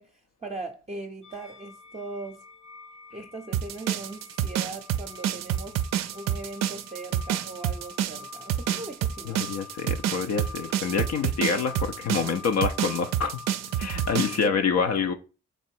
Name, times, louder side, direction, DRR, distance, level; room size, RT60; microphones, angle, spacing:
voice 1, 0.0-2.4 3.1-5.8 6.1-9.4 14.3-15.1, right 2 dB, 20° right, 0.6 m, -40 dB
sound 1, 1.2-14.4, left 5 dB, 75° left, 1.1 m, -46 dB
sound 2, 3.5-14.4, right 11 dB, 65° right, 0.4 m, -28 dB
voice 2, 9.3-13.4 13.8-15.1, left 5 dB, 60° left, 0.6 m, -27 dB
3.1 x 3.0 x 4.4 m
hypercardioid pair, 45°, 29 cm